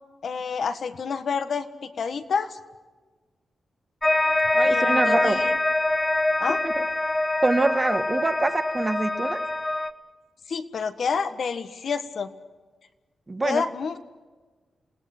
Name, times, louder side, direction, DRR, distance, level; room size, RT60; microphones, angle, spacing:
voice 1, 0.2-2.6 4.6-5.6 6.4-6.6 10.5-12.3 13.4-14.0, left 5 dB, 65° left, 9 dB, 1.5 m, -29 dB
sound 1, 4.0-9.9, left 2 dB, 15° left, 0.9 m, -24 dB
voice 2, 4.5-5.4 6.6-6.8 7.4-9.4 13.3-13.6, right 2 dB, 25° right, 9 dB, 1.4 m, -25 dB
28.0 x 18.0 x 6.1 m, 1.3 s
wide cardioid pair, 105°, 0 cm